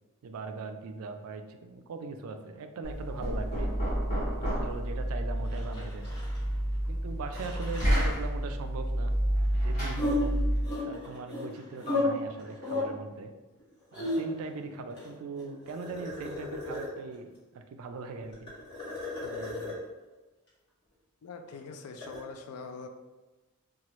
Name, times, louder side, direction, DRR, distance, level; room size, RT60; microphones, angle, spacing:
voice 1, 0.2-3.7 4.3-6.1 6.9-9.2 9.5-13.3 13.9-18.5 19.2-19.8, right 3 dB, 65° right, 7 dB, 0.3 m, -40 dB
Knock, 2.8-10.7, equal, 35° left, 1.0 m, -30 dB
sound 1, 5.5-6.6 6.8-6.9 7.3-8.1 9.9-12.0 12.3-12.8 13.6-14.5 14.9-17.1 18.2-19.8 21.5-22.2, left 2 dB, 50° left, 1.4 m, -35 dB
voice 2, 21.2-22.9, left 4 dB, 85° left, 6 dB, 0.4 m, -43 dB
2.9 x 2.3 x 2.9 m, 1.1 s
head